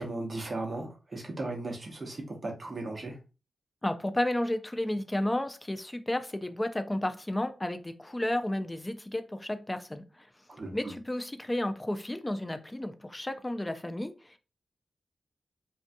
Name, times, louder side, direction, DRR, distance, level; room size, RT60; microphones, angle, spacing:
voice 1, 0.0-3.2 10.5-10.9, right 2 dB, 35° right, 0.8 m, -36 dB
voice 2, 3.8-10.3 10.7-14.4, left 1 dB, 15° left, 0.3 m, -32 dB
2.6 x 2.2 x 2.5 m
wide cardioid pair, 125°, 0 cm